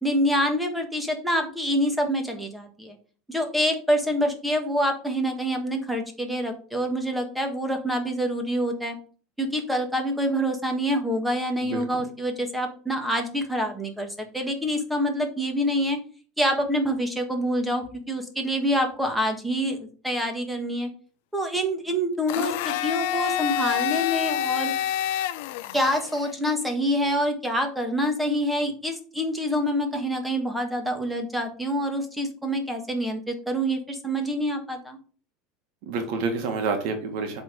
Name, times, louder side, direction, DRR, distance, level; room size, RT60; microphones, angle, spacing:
voice 1, 0.0-3.0 3.3-9.0 9.4-16.0 16.4-20.9 21.3-24.7 25.7-35.0, equal, 5° right, 4 dB, 1.4 m, -26 dB
voice 2, 11.7-12.0 35.8-37.4, right 4 dB, 65° right, 4 dB, 1.5 m, -28 dB
Domestic sounds home sounds, 22.3-26.3, left 13 dB, 70° left, 0.5 m, -28 dB
7.5 x 3.7 x 5.1 m, 0.40 s
supercardioid pair, 135°, 0 cm